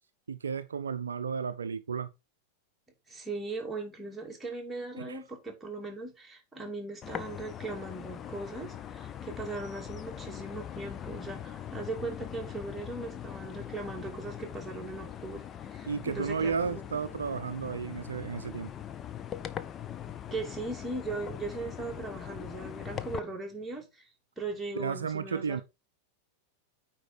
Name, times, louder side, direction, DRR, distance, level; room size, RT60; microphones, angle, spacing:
voice 1, 0.3-2.1 5.0-5.2 15.9-18.7 24.7-25.6, right 6 dB, 70° right, 0.5 m, -33 dB
voice 2, 3.1-15.4 15.7-16.9 20.2-24.1 24.4-25.6, right 3 dB, 5° right, 2.6 m, -39 dB
sound 1, 7.0-23.2, left 9 dB, 25° left, 0.7 m, -41 dB
9.1 x 4.5 x 4.4 m
figure-of-eight pair, 90°, 0 cm